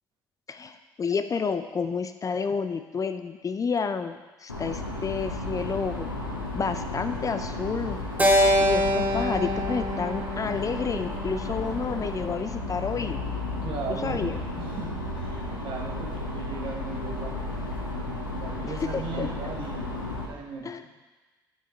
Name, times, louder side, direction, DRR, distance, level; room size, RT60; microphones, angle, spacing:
voice 1, 0.5-6.1 6.5-8.0 8.6-13.2 13.9-14.4 18.6-19.3 20.6-20.8, left 5 dB, 30° left, 9 dB, 0.5 m, -30 dB
sound 1, 4.5-20.3, left 2 dB, 90° left, 0.9 m, -33 dB
Keyboard (musical), 8.2-12.6, equal, 15° right, 1.3 m, -26 dB
voice 2, 13.6-14.2 14.5-17.4 18.3-19.8 20.2-20.9, right 5 dB, 55° right, 0 dB, 1.5 m, -38 dB
11.0 x 5.5 x 4.4 m, 1.2 s
figure-of-eight pair, 45°, 11 cm